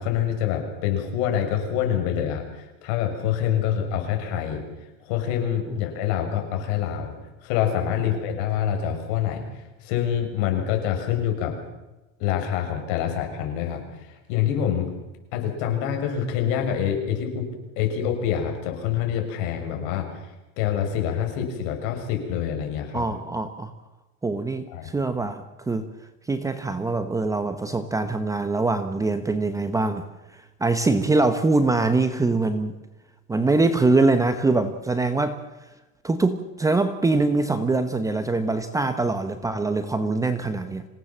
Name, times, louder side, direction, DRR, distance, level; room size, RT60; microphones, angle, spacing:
voice 1, 0.0-4.6 5.1-7.1 7.4-11.5 12.2-14.9 15.3-17.5 17.7-20.2 20.6-23.1 24.7-25.0, left 9 dB, 55° left, 4 dB, 6.9 m, -26 dB
voice 2, 22.9-23.7 24.2-25.9 26.3-30.0 30.6-32.7 33.3-35.4 36.0-40.9, right 3 dB, 10° right, 9 dB, 1.1 m, -23 dB
26.5 x 18.0 x 7.5 m, 1.1 s
supercardioid pair, 150°, 40 cm